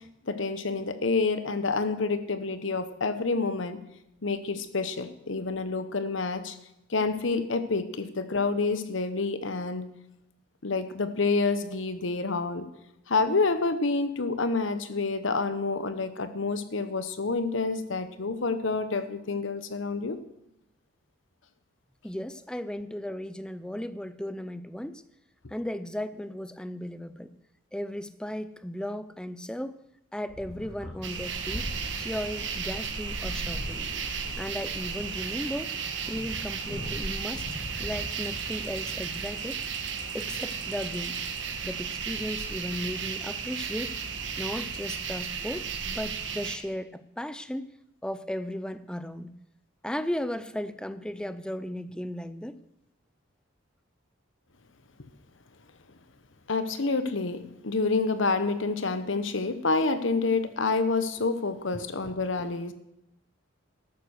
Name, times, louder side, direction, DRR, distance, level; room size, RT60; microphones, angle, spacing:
voice 1, 0.3-3.8 4.2-6.6 6.9-9.8 10.6-12.7 13.1-20.2 56.5-62.7, left 3 dB, 70° left, 11 dB, 1.0 m, -28 dB
voice 2, 22.0-25.0 25.5-27.3 27.7-29.8 30.1-31.7 32.0-33.8 34.4-35.8 36.0-39.6 40.1-41.2 41.6-43.9 44.3-47.7 48.0-49.3 49.8-52.6 61.7-61.8, left 1 dB, 5° left, 14 dB, 0.4 m, -36 dB
sound 1, 30.3-38.5, left 1 dB, 35° left, 3.2 m, -42 dB
sound 2, 31.0-46.6, right 6 dB, 60° right, 1.4 m, -34 dB
13.0 x 9.1 x 6.5 m, 0.86 s
head